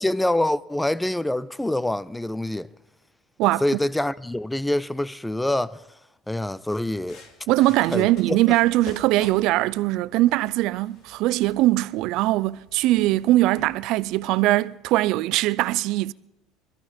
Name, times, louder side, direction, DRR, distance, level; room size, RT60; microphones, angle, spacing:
voice 1, 0.0-2.7 3.6-5.8 6.3-7.2 7.9-8.4, left 1 dB, 5° left, 0.6 m, -25 dB
sound 1, 6.7-14.2, left 4 dB, 60° left, 4.4 m, -49 dB
voice 2, 7.5-16.1, right 17 dB, 65° right, 0.5 m, -21 dB
22.0 x 14.5 x 4.4 m
hypercardioid pair, 80°, 0 cm